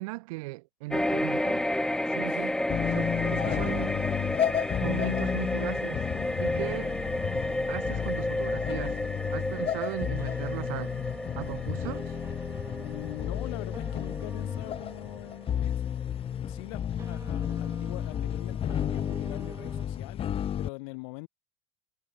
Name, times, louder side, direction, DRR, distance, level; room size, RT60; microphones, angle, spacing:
voice 1, 0.0-1.6 2.1-2.6 2.9-3.9 4.8-6.0 6.4-7.0 7.7-9.0 9.3-10.9 11.4-12.1, right 23 dB, 85° right, 3.5 m, -37 dB
sound 1, 0.9-15.5 15.9-16.0, left 1 dB, 5° left, 2.3 m, -32 dB
sound 2, 2.7-20.7, left 9 dB, 35° left, 1.2 m, -32 dB
sound 3, 4.7-19.9, right 4 dB, 15° right, 7.5 m, -48 dB
voice 2, 12.8-16.0 16.5-21.3, left 30 dB, 80° left, 3.3 m, -43 dB
supercardioid pair, 125°, 17 cm